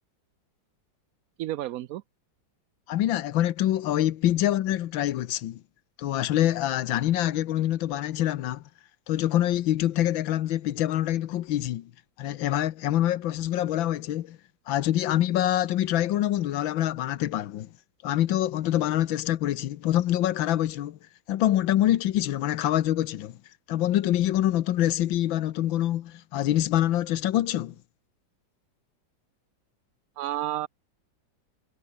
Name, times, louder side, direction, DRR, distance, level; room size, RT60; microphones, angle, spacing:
voice 1, 1.4-2.0 30.2-30.7, right 14 dB, 90° right, 0.7 m, -31 dB
voice 2, 2.9-5.6 6.0-8.6 9.1-11.9 12.2-14.4 14.7-17.7 18.0-21.0 21.3-23.4 23.7-27.7, left 13 dB, 80° left, 1.6 m, -25 dB
omnidirectional pair, 2.1 m